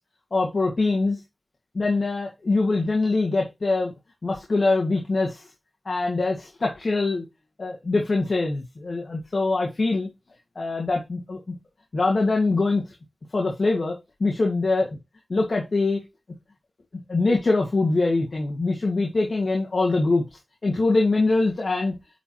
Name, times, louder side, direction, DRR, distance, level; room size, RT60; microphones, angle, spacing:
voice 1, 0.3-1.2 1.7-3.9 4.2-5.5 5.9-7.2 7.6-10.1 10.6-11.4 11.9-12.8 13.3-14.0 14.2-15.0 15.3-16.0 17.1-20.2 20.6-21.9, left 3 dB, 75° left, 0 dB, 1.9 m, -23 dB
9.4 x 4.5 x 3.0 m, 0.23 s
wide cardioid pair, 50°, 0 cm